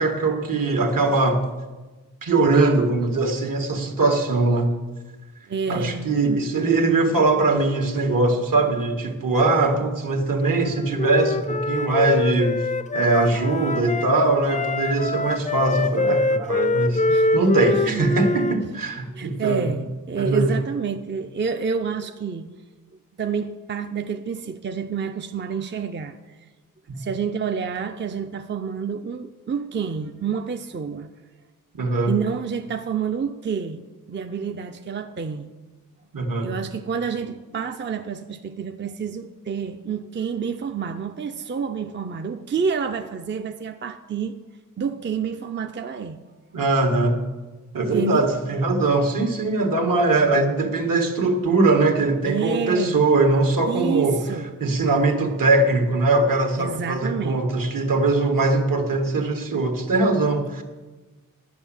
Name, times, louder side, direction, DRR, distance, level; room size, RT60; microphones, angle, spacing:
voice 1, 0.0-1.4 2.2-4.7 5.7-12.6 12.9-17.0 17.3-19.7 20.2-20.6 26.9-27.0 31.7-32.1 36.1-36.5 46.5-47.2 47.7-54.2 54.6-60.6, right 3 dB, 75° right, 4 dB, 1.6 m, -21 dB
voice 2, 5.5-6.7 17.1-18.0 19.1-22.5 23.2-26.4 27.0-31.1 32.1-33.8 34.1-35.5 36.4-44.4 44.8-46.2 47.9-48.3 52.2-53.0 53.6-54.5 56.6-57.4, right 6 dB, 35° right, 7 dB, 0.5 m, -29 dB
Wind instrument woodwind instrument, 10.5-14.1 14.5-18.6, left 3 dB, 25° left, 0.4 m, -24 dB
11.0 x 6.2 x 8.8 m, 1.2 s
wide cardioid pair, 140°, 33 cm